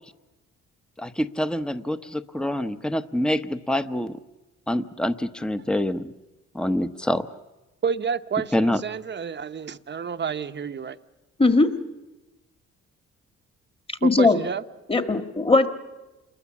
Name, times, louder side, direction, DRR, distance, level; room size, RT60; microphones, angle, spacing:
voice 1, 1.0-4.2 4.7-6.1 6.5-7.3 8.5-8.8, left 1 dB, 5° left, 11 dB, 0.9 m, -26 dB
voice 2, 7.8-11.0 14.0-14.6, right 6 dB, 35° right, 11 dB, 0.9 m, -29 dB
voice 3, 11.4-11.7 13.9-14.4 14.9-15.7, left 3 dB, 20° left, 7 dB, 1.7 m, -19 dB
28.0 x 21.5 x 7.2 m, 1.1 s
cardioid pair, 90°, 30 cm